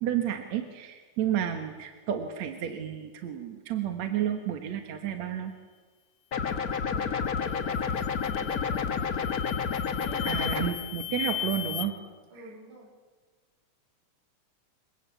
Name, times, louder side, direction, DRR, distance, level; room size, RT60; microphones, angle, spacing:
voice 1, 0.0-5.5 10.3-11.9, right 10 dB, 65° right, 6 dB, 2.6 m, -31 dB
sound 1, 6.3-10.7, left 6 dB, 55° left, 1.0 m, -30 dB
voice 2, 6.4-9.1 9.9-10.8 11.1-11.4 12.3-12.9, equal, 80° right, -1 dB, 9.5 m, -46 dB
sound 2, 7.4-7.7 8.2-8.7 9.2-11.9, left 12 dB, 85° left, 2.5 m, -36 dB
27.5 x 23.0 x 8.4 m, 1.4 s
omnidirectional pair, 3.5 m